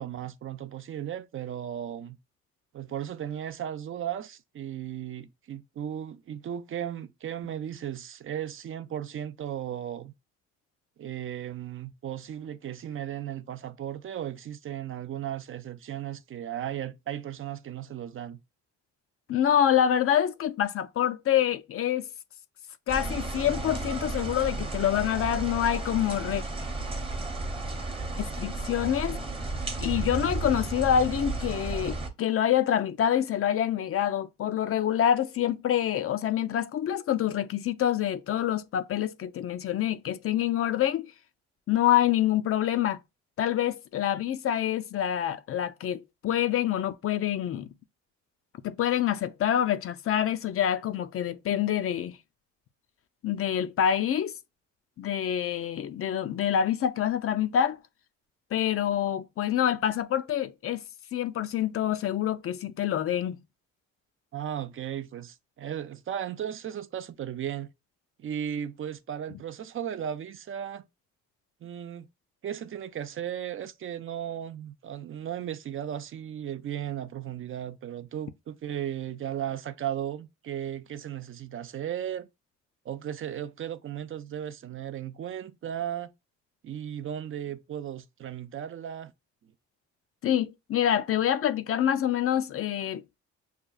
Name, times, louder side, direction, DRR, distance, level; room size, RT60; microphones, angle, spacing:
voice 1, 0.0-2.2 2.7-10.1 11.0-18.4 64.3-67.7 68.2-70.8 71.6-72.1 72.4-82.3 82.9-86.1 86.6-89.1, right 10 dB, 45° right, 0.4 m, -36 dB
voice 2, 19.3-22.1 22.9-26.4 28.2-29.2 29.8-41.1 41.7-43.0 43.4-47.7 48.6-52.2 53.2-54.3 55.0-57.8 58.5-60.8 61.1-63.4 90.2-93.2, left 10 dB, 50° left, 0.4 m, -26 dB
sound 1, 22.9-32.1, right 2 dB, 20° right, 0.8 m, -33 dB
6.4 x 2.3 x 2.3 m
cardioid pair, 90°, 30 cm